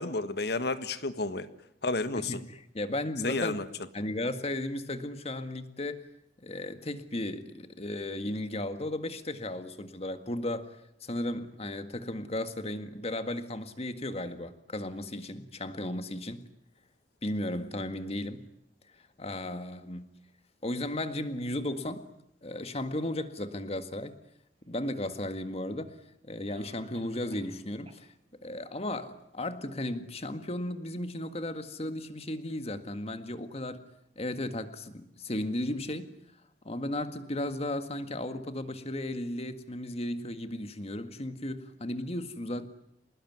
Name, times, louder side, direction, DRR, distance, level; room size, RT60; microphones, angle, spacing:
voice 1, 0.0-1.5 1.8-2.4 3.2-3.7, left 3 dB, 65° left, 1.6 m, -31 dB
voice 2, 2.2-3.5 3.9-6.0 6.4-16.4 17.2-18.4 19.2-20.1 20.6-22.1 22.4-24.2 24.7-25.9 26.2-28.1 28.4-33.9 34.2-36.1 36.7-42.7, left 1 dB, 35° left, 1.8 m, -35 dB
Cough, 25.3-25.4 26.5-27.6 27.9-28.0 28.5-28.6 29.2-29.3, right 2 dB, 35° right, 3.9 m, -54 dB
26.5 x 20.0 x 9.5 m
head